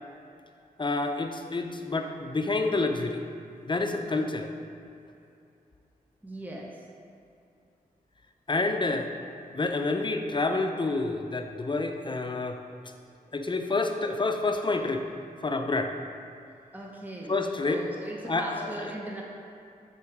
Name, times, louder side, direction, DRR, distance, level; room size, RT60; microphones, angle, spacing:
voice 1, 0.8-3.2 3.6-4.5 8.5-9.1 9.5-12.6 13.3-15.0 15.4-15.9 17.3-17.9 18.2-18.9, left 3 dB, 30° left, 5 dB, 0.7 m, -28 dB
voice 2, 6.2-6.8 16.7-19.2, right 1 dB, 10° right, -2 dB, 1.0 m, -39 dB
6.7 x 4.7 x 4.9 m, 2.5 s
cardioid pair, 45°, 16 cm